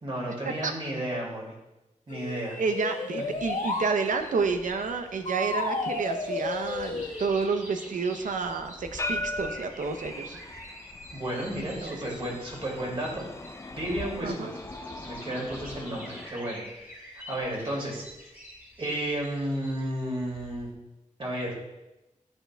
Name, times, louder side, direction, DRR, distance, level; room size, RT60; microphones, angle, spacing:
voice 1, 0.0-1.5 2.1-2.5 11.1-13.2 13.7-14.5 15.0-18.0 18.8-20.7 21.2-21.6, right 1 dB, 45° right, -3 dB, 2.2 m, -32 dB
sound 1, 2.1-3.9 5.3-7.3, left 2 dB, 80° left, 0.8 m, -32 dB
voice 2, 2.6-10.4 11.8-12.1 14.2-14.5, right 4 dB, 90° right, 6 dB, 0.6 m, -30 dB
sound 2, 3.1-20.7, equal, 15° right, 1.5 m, -48 dB
sound 3, 4.1-16.3, left 2 dB, 25° left, 0.4 m, -41 dB
10.5 x 4.4 x 2.2 m, 0.96 s
wide cardioid pair, 85°, 13 cm